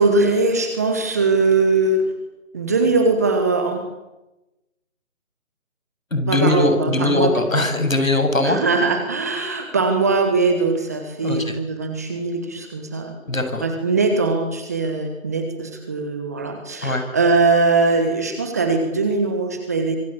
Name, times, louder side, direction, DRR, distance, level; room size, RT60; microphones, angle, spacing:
voice 1, 0.0-2.0 2.5-3.8 6.3-7.6 8.4-13.2 13.6-20.0, right 3 dB, 10° right, 6 dB, 1.3 m, -21 dB
voice 2, 6.1-8.6 11.2-11.6 13.3-13.6 16.8-17.0, left 2 dB, 70° left, 7 dB, 7.7 m, -20 dB
25.5 x 25.0 x 8.7 m, 0.98 s
figure-of-eight pair, 160°, 42 cm